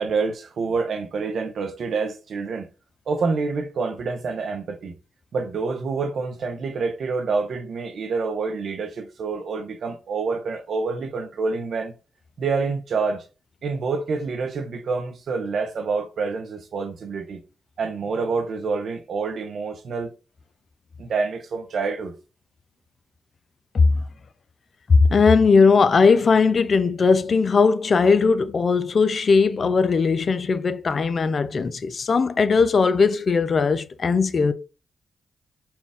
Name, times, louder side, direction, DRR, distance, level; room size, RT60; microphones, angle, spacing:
voice 1, 0.0-2.7 3.1-4.9 5.3-11.9 12.4-13.2 13.6-17.4 17.8-20.1 21.0-22.2 26.5-26.6, right 4 dB, 70° right, 0.7 m, -27 dB
voice 2, 24.9-34.5, left 4 dB, 55° left, 0.4 m, -18 dB
4.3 x 2.3 x 3.5 m
supercardioid pair, 45°, 0 cm